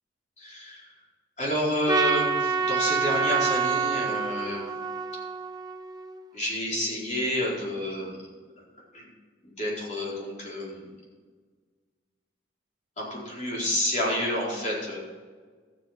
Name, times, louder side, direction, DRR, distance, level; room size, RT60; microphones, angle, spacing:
voice 1, 0.4-0.9 1.4-4.7 6.3-8.3 8.9-9.1 9.4-10.9 13.0-15.0, left 1 dB, 40° left, -5 dB, 4.4 m, -29 dB
Trumpet, 1.9-6.3, right 5 dB, 20° right, 0.5 m, -27 dB
13.5 x 8.2 x 5.8 m, 1.5 s
head